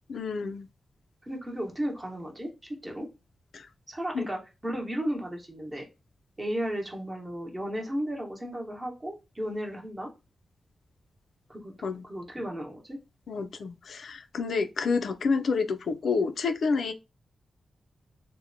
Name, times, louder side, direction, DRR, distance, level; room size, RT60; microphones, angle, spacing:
voice 1, 0.1-0.7 3.5-3.7 4.1-4.3 11.8-12.0 13.3-16.9, left 4 dB, 75° left, 0.3 m, -29 dB
voice 2, 1.2-3.1 3.9-5.9 6.4-10.1 11.5-11.7 12.0-13.0, equal, 20° right, 0.8 m, -34 dB
2.8 x 2.1 x 2.5 m
cardioid pair, 85°, 0 cm